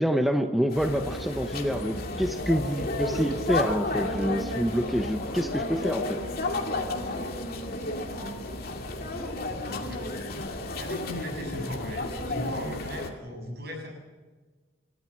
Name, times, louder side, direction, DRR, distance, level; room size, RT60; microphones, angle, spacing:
voice 1, 0.0-6.2, equal, ahead, 5 dB, 0.8 m, -27 dB
sound 1, 0.7-13.1, left 2 dB, 45° left, 2.5 m, -32 dB
voice 2, 9.7-10.1 10.8-13.9, left 1 dB, 50° right, 2 dB, 7.1 m, -37 dB
28.5 x 14.0 x 7.3 m, 1.3 s
head